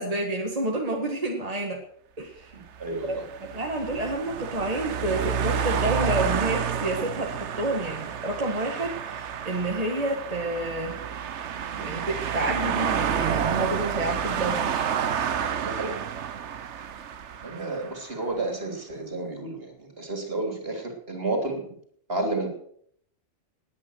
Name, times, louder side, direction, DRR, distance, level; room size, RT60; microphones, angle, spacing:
voice 1, 0.0-1.8 2.2-2.5 3.0-3.2 3.5-11.0 11.8-14.7, right 1 dB, 30° right, 0 dB, 2.0 m, -29 dB
voice 2, 2.5-3.2 15.6-16.0 17.4-21.6 22.1-22.5, right 2 dB, 55° right, 3 dB, 3.5 m, -31 dB
sound 1, 2.7-18.1, right 8 dB, 75° right, 1.2 m, -30 dB
19.5 x 9.6 x 6.4 m, 0.66 s
omnidirectional pair, 1.2 m